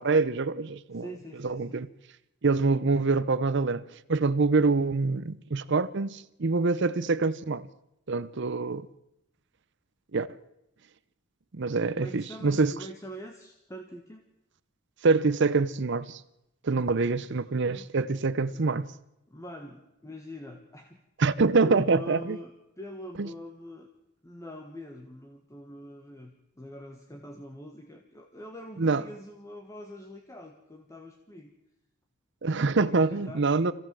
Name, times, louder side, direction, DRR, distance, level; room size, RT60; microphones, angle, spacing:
voice 1, 0.0-1.1 1.4-1.9 2.4-3.8 4.1-7.7 8.1-8.9 10.1-10.3 11.5-12.7 15.0-16.2 16.6-18.9 21.2-22.4 23.2-23.3 28.8-29.0 32.4-33.7, right 3 dB, 55° right, 0.7 m, -25 dB
voice 2, 0.9-1.8 12.0-14.2 17.0-18.1 19.3-21.0 21.5-22.5 22.8-23.9 24.2-31.5 32.8-33.5, equal, 15° left, 1.4 m, -44 dB
25.0 x 16.0 x 7.6 m
head